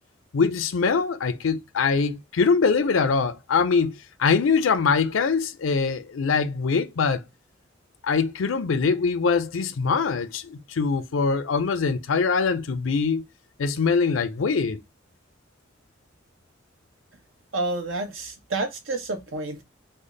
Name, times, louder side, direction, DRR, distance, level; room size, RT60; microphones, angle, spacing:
voice 1, 0.3-7.2 8.0-13.2 13.6-14.8, left 5 dB, 90° left, 0.5 m, -23 dB
voice 2, 17.5-19.6, right 2 dB, 85° right, 0.9 m, -29 dB
3.4 x 2.1 x 3.8 m
head